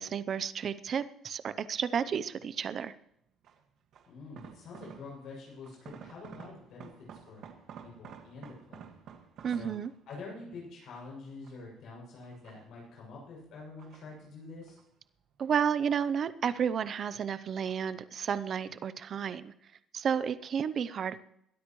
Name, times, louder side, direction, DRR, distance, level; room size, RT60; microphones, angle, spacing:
voice 1, 0.0-2.9 9.4-9.9 15.4-19.5 19.9-21.2, right 7 dB, 40° right, 14 dB, 0.7 m, -32 dB
sound 1, 2.2-2.6 3.4-5.4 5.6-10.4 10.9-11.8 12.2-13.1 13.6-14.9 15.2-16.3 16.6-17.2 17.6-18.0 18.3-18.4, right 7 dB, 55° right, 1.8 m, -52 dB
voice 2, 4.1-7.4 7.8-8.9 9.5-9.8 10.1-14.8, left 3 dB, 55° left, -3 dB, 6.9 m, -47 dB
22.0 x 13.0 x 3.1 m, 0.74 s
cardioid pair, 155°, 0 cm